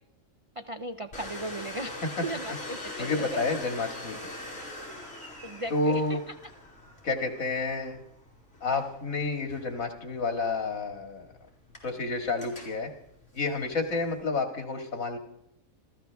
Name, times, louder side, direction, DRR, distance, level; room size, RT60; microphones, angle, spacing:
voice 1, 0.6-3.4 5.4-6.3 13.9-14.0, right 2 dB, 50° right, 8 dB, 0.4 m, -37 dB
Domestic sounds home sounds, 1.1-14.2, left 2 dB, 50° left, 5.0 m, -43 dB
voice 2, 3.0-4.3 5.7-6.2 7.0-8.0 8.6-11.3 11.8-12.9 13.3-15.2, left 3 dB, 80° left, 4 dB, 2.4 m, -30 dB
28.0 x 14.0 x 3.5 m, 0.77 s
omnidirectional pair, 1.4 m